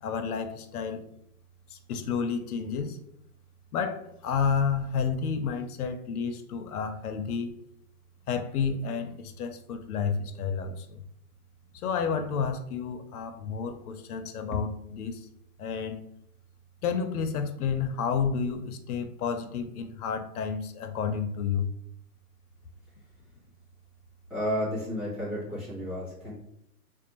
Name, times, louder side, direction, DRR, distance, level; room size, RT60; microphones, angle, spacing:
voice 1, 0.0-1.0 1.7-3.0 3.7-7.6 8.3-11.0 11.7-15.3 15.6-16.0 16.8-21.7, left 6 dB, 75° left, 7 dB, 0.6 m, -30 dB
voice 2, 24.3-26.3, equal, 5° right, -13 dB, 0.8 m, -32 dB
2.6 x 2.0 x 2.9 m, 0.76 s
hypercardioid pair, 165°, 45 cm